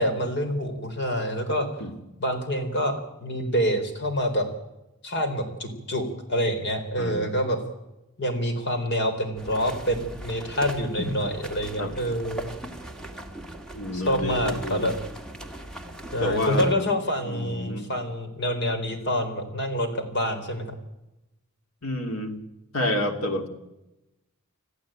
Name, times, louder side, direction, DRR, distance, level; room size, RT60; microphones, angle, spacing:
voice 1, 0.0-1.7 2.2-4.5 5.0-7.6 8.2-12.5 13.9-15.0 16.1-20.7, equal, 55° left, 7 dB, 4.1 m, -27 dB
voice 2, 7.0-7.3 11.0-11.1 11.8-11.9 13.7-14.9 16.2-16.9 17.2-17.9 21.8-22.4 22.7-23.5, left 1 dB, 85° left, 6 dB, 3.0 m, -29 dB
sound 1, 9.4-16.7, right 1 dB, 5° left, 2.0 m, -39 dB
27.0 x 14.5 x 9.0 m, 0.96 s
head